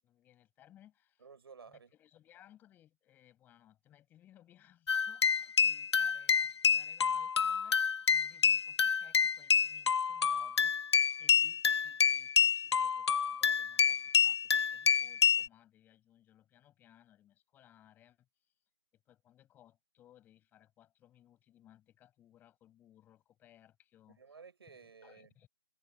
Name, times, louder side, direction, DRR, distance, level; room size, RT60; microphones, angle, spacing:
voice 1, 0.0-1.2 1.9-10.8 11.2-18.3 18.9-24.2 24.7-24.8 25.0-25.5, left 12 dB, 15° left, 7.8 m, -63 dB
voice 2, 1.2-1.9 24.2-25.3, right 5 dB, 60° right, 5.7 m, -54 dB
sound 1, 4.9-15.5, left 6 dB, 70° left, 0.4 m, -28 dB
figure-of-eight pair, 145°, 15 cm